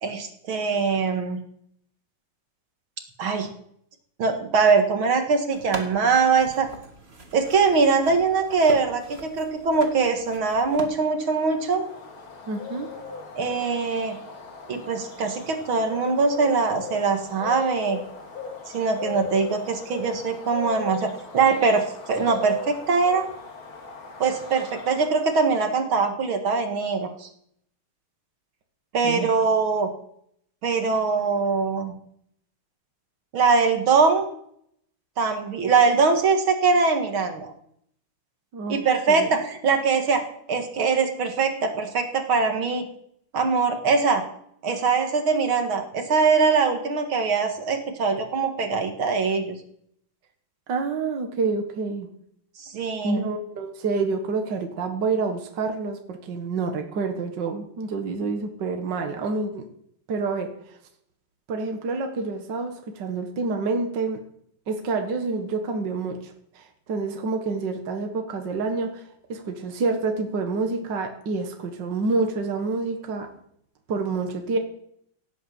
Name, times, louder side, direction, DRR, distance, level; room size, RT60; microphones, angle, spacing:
voice 1, 0.0-1.4 3.2-3.5 4.2-6.7 7.3-11.8 13.4-14.2 14.7-18.0 18.7-23.3 24.2-27.3 28.9-29.9 30.6-31.9 33.3-34.2 35.2-37.5 38.7-40.2 40.5-42.9 43.3-44.2 44.6-49.6 52.6-53.3, right 4 dB, 70° right, 5 dB, 2.6 m, -22 dB
sound 1, 5.5-10.8, right 3 dB, 30° right, 2.1 m, -40 dB
Bird, 11.0-25.7, left 5 dB, 70° left, 3.1 m, -38 dB
voice 2, 12.5-12.9 29.0-29.3 38.5-38.8 39.1-39.4 50.7-52.1 53.0-59.7 60.1-60.5 61.5-64.2 64.7-73.3 73.9-74.6, right 4 dB, 55° right, 4 dB, 2.1 m, -28 dB
17.5 x 8.6 x 7.7 m, 0.69 s
omnidirectional pair, 2.3 m